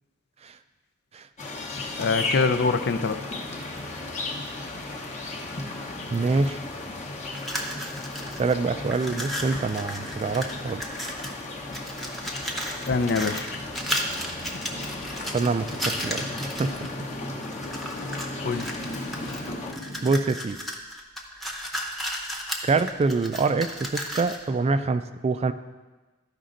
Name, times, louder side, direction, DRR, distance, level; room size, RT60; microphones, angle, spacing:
sound 1, 1.4-19.7, left 2 dB, 35° left, 0.9 m, -35 dB
voice 1, 2.0-3.2 12.9-13.5 18.4-18.7, left 4 dB, 50° left, 10 dB, 0.5 m, -24 dB
voice 2, 6.1-6.6 8.2-10.8 15.3-16.7 20.0-20.6 22.6-25.5, right 4 dB, 30° right, 10 dB, 0.3 m, -25 dB
sound 2, 7.3-8.5 8.8-11.4 11.7-16.9 17.4-18.3 18.6-24.5, equal, ahead, 0.8 m, -34 dB
Motorcycle, 14.6-20.1, left 1 dB, 90° left, 1.4 m, -40 dB
12.5 x 5.2 x 3.8 m, 1.2 s
head